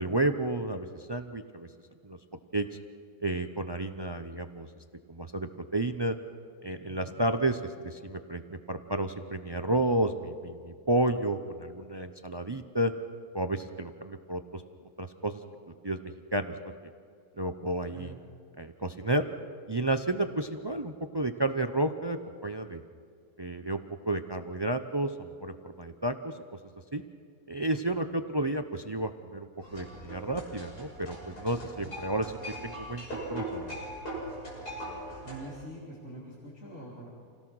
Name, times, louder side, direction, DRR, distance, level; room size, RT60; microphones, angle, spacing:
voice 1, 0.0-1.7 2.0-2.2 2.5-2.7 3.2-4.7 5.1-6.2 6.6-12.9 13.3-14.6 15.0-15.4 15.8-16.0 16.3-16.6 17.4-18.1 18.6-19.3 19.7-22.8 23.4-26.3 26.9-27.0 27.5-32.3 32.6-33.7, right 1 dB, 35° right, 8 dB, 0.4 m, -31 dB
voice 2, 6.9-7.2 17.9-18.3 31.6-31.9 35.2-37.1, right 2 dB, 45° left, -6 dB, 3.6 m, -45 dB
sound 1, 29.6-35.5, right 1 dB, 80° left, 7.2 m, -40 dB
28.0 x 17.5 x 6.2 m, 2.2 s
omnidirectional pair, 1.7 m